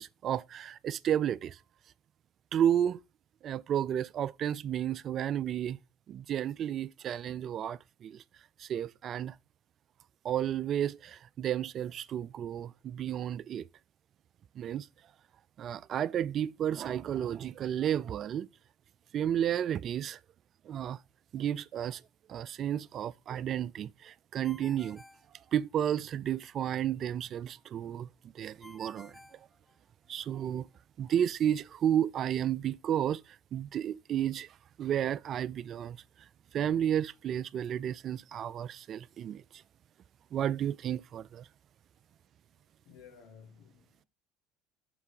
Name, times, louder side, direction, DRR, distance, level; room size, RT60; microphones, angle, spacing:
voice 1, 0.0-1.6 2.5-3.0 3.4-5.8 6.1-8.2 8.6-9.4 10.2-13.7 14.6-14.9 15.6-18.5 19.1-20.2 20.7-21.0 21.3-22.0 22.3-25.0 25.5-29.2 30.1-30.7 31.0-34.5 34.8-36.0 36.5-39.6 40.3-41.5, right 10 dB, 50° right, 0.3 m, -32 dB
Ringtone, 24.4-26.1 28.6-30.2, left 1 dB, ahead, 0.5 m, -55 dB
voice 2, 42.8-44.0, left 7 dB, 75° left, 1.4 m, -55 dB
6.3 x 3.2 x 4.7 m
hypercardioid pair, 80°, 0 cm